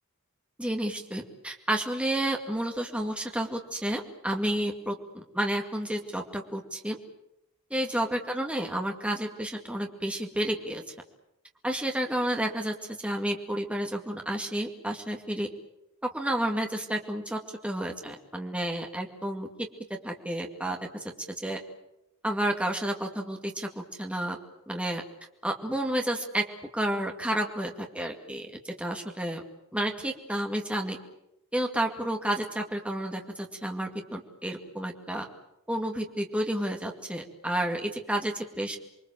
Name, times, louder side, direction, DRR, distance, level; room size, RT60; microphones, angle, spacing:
voice 1, 0.6-7.0 7.7-10.8 11.6-15.5 16.0-19.7 20.0-21.0 21.4-21.6 22.2-24.4 24.7-25.0 25.4-26.4 26.7-29.4 29.7-31.0 31.5-35.3 35.7-38.8, right 1 dB, 5° right, 2 dB, 2.2 m, -31 dB
28.5 x 23.0 x 7.6 m, 0.85 s
head